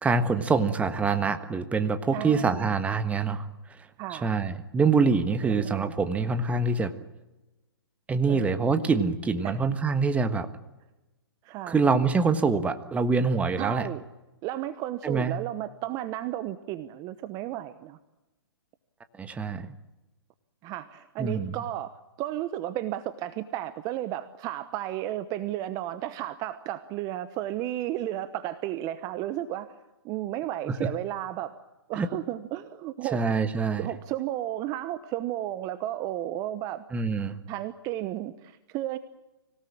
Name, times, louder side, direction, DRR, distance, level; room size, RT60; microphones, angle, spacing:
voice 1, 0.0-3.5 4.1-6.9 8.1-10.5 11.7-13.9 15.0-15.3 19.2-19.7 21.2-21.5 30.7-30.9 32.0-32.1 33.1-33.9 36.9-37.4, right 4 dB, 10° right, 10 dB, 1.4 m, -25 dB
voice 2, 2.1-2.6 4.0-4.3 5.4-5.9 8.3-8.6 9.4-9.7 11.4-11.8 13.6-14.0 14.4-18.0 20.6-29.7 30.0-31.5 31.9-33.2 33.8-36.8 37.5-39.0, right 13 dB, 30° right, 13 dB, 1.0 m, -33 dB
25.5 x 17.5 x 8.8 m, 1.1 s
hypercardioid pair, 130°, 13 cm